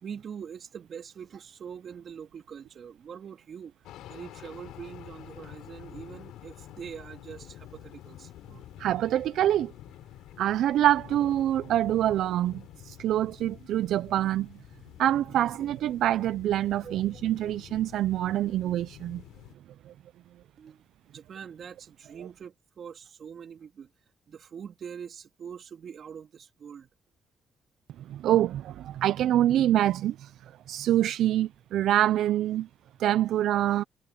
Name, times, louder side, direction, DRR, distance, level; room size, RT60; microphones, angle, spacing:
voice 1, 0.0-8.3 16.8-17.2 20.6-23.9 24.3-26.9, right 7 dB, 60° right, 3.4 m, -43 dB
sound 1, 3.8-19.5, left 14 dB, 80° left, 5.7 m, -48 dB
voice 2, 8.8-9.7 10.4-14.5 15.0-19.2 28.1-30.3 30.7-32.7 33.0-33.8, right 12 dB, 75° right, 0.5 m, -25 dB
supercardioid pair, 65°, 0 cm